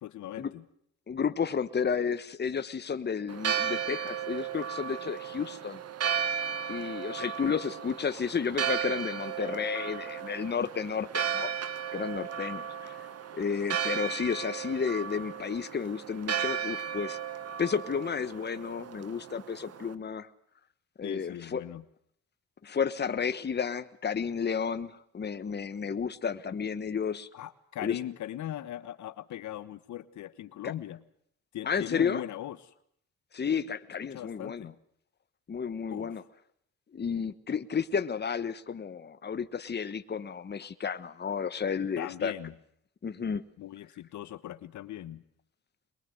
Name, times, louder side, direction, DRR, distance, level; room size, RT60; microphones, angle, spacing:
voice 1, 0.0-0.6 21.0-21.8 27.3-31.0 31.5-32.7 33.6-33.7 34.1-34.8 35.8-36.2 42.0-42.5 43.6-45.2, left 12 dB, 70° left, 14 dB, 1.2 m, -39 dB
voice 2, 1.1-5.8 6.7-11.5 11.9-13.0 13.3-17.2 17.6-20.3 21.0-21.6 22.6-27.3 27.8-28.0 30.6-30.7 31.6-32.2 33.3-34.7 35.5-36.2 36.9-42.3 43.0-43.4, left 6 dB, 35° left, 12 dB, 1.4 m, -32 dB
Church bell, 3.3-19.9, right 8 dB, 55° right, 1.6 m, -35 dB
23.0 x 22.0 x 7.9 m, 0.68 s
cardioid pair, 90°, 30 cm